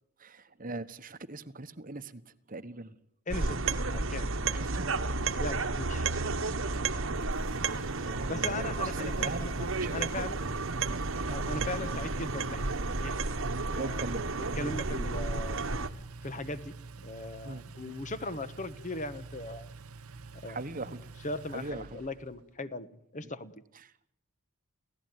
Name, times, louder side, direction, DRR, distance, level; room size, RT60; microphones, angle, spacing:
voice 1, 0.2-2.2 2.5-3.0 4.5-4.9 8.1-9.5 9.8-10.2 13.7-14.7 17.4-17.9 20.5-21.0 21.5-22.0 23.2-23.3 23.8-24.1, right 2 dB, 40° right, 13 dB, 1.1 m, -41 dB
voice 2, 3.3-4.3 5.4-6.1 8.3-10.4 11.3-13.1 13.7-14.0 14.5-15.6 16.2-19.7 20.4-20.6 20.9-21.0 21.2-23.5, left 2 dB, 35° left, 13 dB, 1.2 m, -39 dB
sound 1, 3.3-15.9, right 3 dB, 60° right, 1.3 m, -32 dB
Engine, 6.7-22.4, right 3 dB, 80° right, 1.0 m, -48 dB
29.0 x 16.5 x 9.4 m, 0.72 s
head